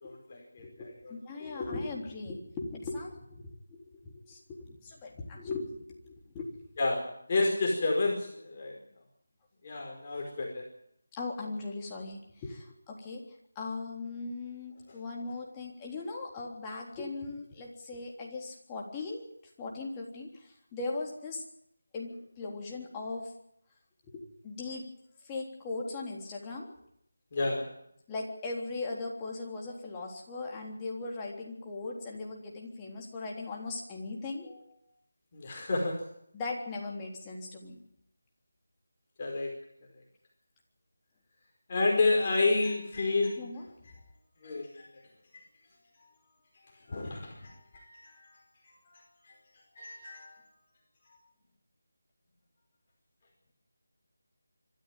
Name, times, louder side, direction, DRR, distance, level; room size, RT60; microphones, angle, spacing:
voice 1, 0.0-0.6 1.0-1.1 1.4-1.6 6.8-7.0 7.3-8.8 9.6-10.6 27.3-27.7 35.3-36.0 39.2-39.5 41.7-43.4 44.4-44.9 45.3-45.4 46.0-46.1 46.9-48.4 48.7-49.0 49.3-49.4 49.7-50.4, left 3 dB, 30° left, -1 dB, 4.9 m, -30 dB
voice 2, 0.6-5.7 6.0-6.5 11.2-13.2 13.6-19.2 19.6-21.4 21.9-23.3 24.1-24.9 25.2-26.7 28.1-34.8 36.3-37.8 43.4-43.7 47.2-47.3, left 3 dB, 15° left, -1 dB, 3.6 m, -39 dB
25.5 x 13.0 x 9.1 m, 0.74 s
figure-of-eight pair, 165°, 0 cm